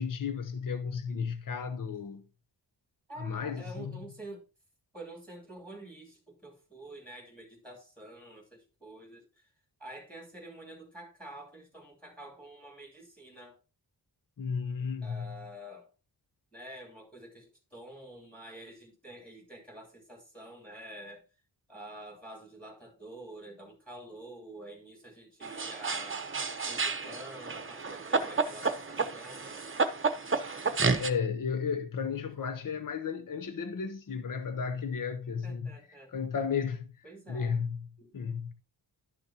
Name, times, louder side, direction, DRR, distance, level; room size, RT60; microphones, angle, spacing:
voice 1, 0.0-2.2 3.2-4.1 14.4-15.4 30.8-35.8 36.1-36.9 37.3-37.9 38.1-38.5, left 6 dB, 50° left, 0.9 m, -34 dB
voice 2, 3.1-4.4 4.9-9.5 9.8-13.6 15.0-15.9 16.5-21.2 21.7-26.2 26.6-29.6 35.4-36.1 37.0-38.2, right 1 dB, 5° left, 2.9 m, -48 dB
sound 1, 25.4-31.1, right 4 dB, 30° right, 0.9 m, -31 dB
11.5 x 6.5 x 2.9 m
wide cardioid pair, 115°, 43 cm